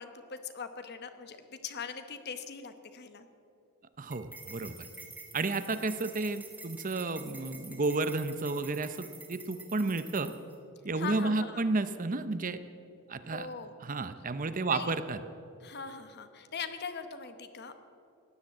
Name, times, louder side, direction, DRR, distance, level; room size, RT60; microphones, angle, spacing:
voice 1, 0.0-3.3 10.9-11.6 13.3-13.7 14.7-14.9 15.6-17.8, left 5 dB, 50° left, 9 dB, 1.1 m, -41 dB
voice 2, 4.0-4.8 5.3-10.3 10.8-12.6 13.1-13.5 13.8-15.2, right 3 dB, 35° right, 11 dB, 0.7 m, -32 dB
sound 1, 4.1-10.5, right 3 dB, 5° right, 1.9 m, -48 dB
16.5 x 10.5 x 8.5 m, 2.6 s
head